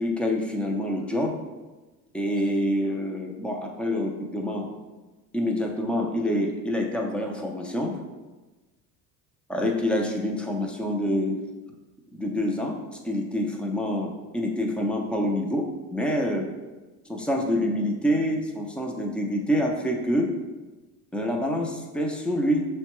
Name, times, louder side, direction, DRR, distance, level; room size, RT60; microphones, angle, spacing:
voice 1, 0.0-1.4 2.1-4.7 5.3-8.0 9.5-11.4 12.1-16.5 17.1-20.3 21.1-22.7, equal, 5° left, 1 dB, 0.4 m, -26 dB
6.4 x 2.2 x 3.0 m, 1.2 s
cardioid pair, 130°, 33 cm